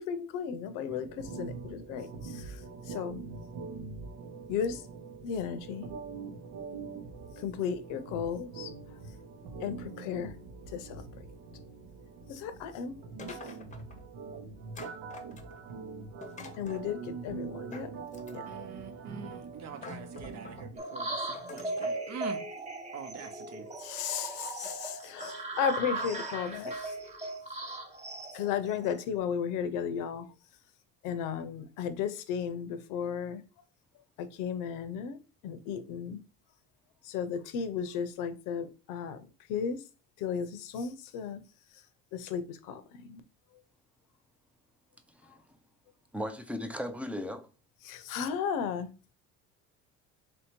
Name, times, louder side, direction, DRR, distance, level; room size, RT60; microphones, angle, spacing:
voice 1, 0.0-3.2 4.5-4.8 5.2-5.9 7.4-8.7 9.6-10.3 10.7-11.0 12.3-13.0 13.3-13.5 16.6-17.9 18.3-18.5 23.8-27.0 28.3-30.3 31.0-33.4 34.2-35.2 35.4-36.2 37.0-39.2 39.5-39.8 40.2-41.4 42.1-43.2 47.8-48.9, left 7 dB, 80° left, 0.7 m, -34 dB
sound 1, 0.9-20.7, right 4 dB, 85° right, 0.9 m, -44 dB
sound 2, 13.2-14.0 14.7-15.7 16.2-16.9 17.7-18.6 19.3-19.4 19.8-20.7 21.3-22.0, left 3 dB, 25° left, 0.7 m, -46 dB
voice 2, 18.5-22.4 22.9-23.7, right 7 dB, 55° right, 0.8 m, -44 dB
sound 3, 20.8-29.2, right 2 dB, 20° right, 0.9 m, -38 dB
voice 3, 45.2-45.6 46.1-47.5, left 1 dB, 5° right, 0.4 m, -37 dB
3.2 x 2.8 x 4.3 m
cardioid pair, 115°, 31 cm